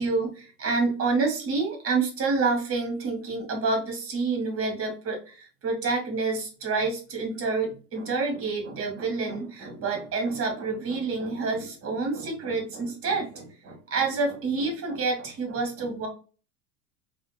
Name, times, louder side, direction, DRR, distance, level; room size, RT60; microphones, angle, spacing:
voice 1, 0.0-16.1, right 3 dB, 30° right, 2 dB, 1.2 m, -28 dB
2.8 x 2.6 x 2.2 m, 0.37 s
hypercardioid pair, 90°, 49 cm